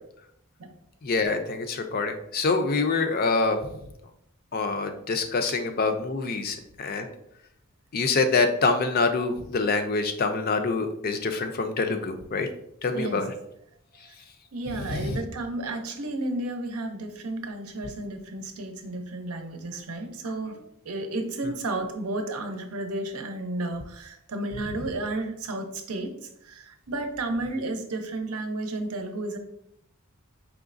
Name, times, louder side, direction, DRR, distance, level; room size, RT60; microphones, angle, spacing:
voice 1, 1.0-3.6 4.5-7.1 7.9-12.5 12.8-13.3 14.9-15.2, left 4 dB, 40° left, 7 dB, 0.4 m, -25 dB
voice 2, 14.5-20.6 20.8-29.4, right 2 dB, 85° right, 5 dB, 0.7 m, -32 dB
4.8 x 3.1 x 2.5 m, 0.75 s
head